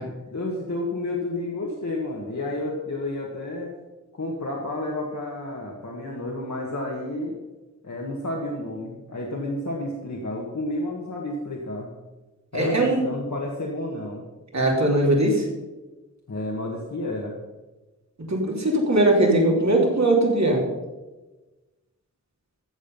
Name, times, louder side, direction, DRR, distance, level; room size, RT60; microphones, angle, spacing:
voice 1, 0.0-3.7 4.1-7.4 7.8-11.9 12.5-14.3 16.3-17.4, left 1 dB, 65° left, -2 dB, 1.7 m, -31 dB
voice 2, 12.5-13.0 14.5-15.5 18.3-20.6, right 1 dB, 60° right, 0 dB, 3.0 m, -20 dB
14.5 x 7.5 x 5.5 m, 1.2 s
wide cardioid pair, 70°, 31 cm